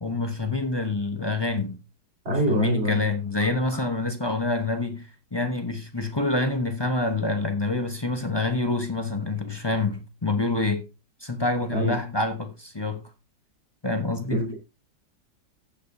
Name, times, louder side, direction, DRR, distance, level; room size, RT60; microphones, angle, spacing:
voice 1, 0.0-1.8 2.3-10.9 11.2-13.1 13.8-14.4, left 2 dB, 25° left, 0.6 m, -27 dB
voice 2, 2.2-3.1 11.7-12.0 14.3-14.6, equal, 35° right, 4.6 m, -24 dB
15.5 x 7.6 x 2.7 m
omnidirectional pair, 1.9 m